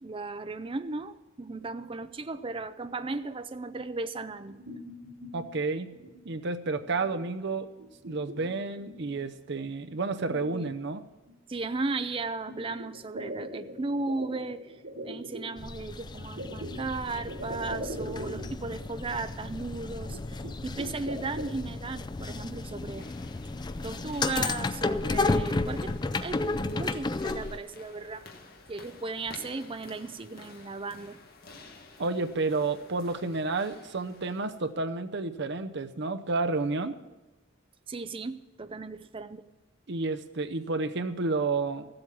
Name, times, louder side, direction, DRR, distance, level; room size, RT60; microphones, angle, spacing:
voice 1, 0.0-4.6 10.5-10.7 11.5-14.7 15.0-23.1 23.8-28.3 28.7-31.2 37.9-39.4, right 3 dB, 25° right, 0.5 m, -36 dB
sound 1, 4.5-5.5 5.9-6.3 6.7-7.2 7.5-9.2 9.6-9.7 10.1-11.3 12.5-15.5 16.4-18.8 19.1-19.2 19.4-19.5 20.1-21.5, equal, 75° right, 2.9 m, -41 dB
voice 2, 5.3-5.9 6.2-7.7 8.1-11.0 32.0-36.9 39.9-41.9, right 3 dB, 60° right, 0.8 m, -30 dB
sound 2, 15.6-27.6, left 3 dB, 20° left, 0.4 m, -33 dB
sound 3, 22.8-34.7, left 3 dB, 50° left, 1.4 m, -52 dB
14.5 x 7.9 x 7.2 m
head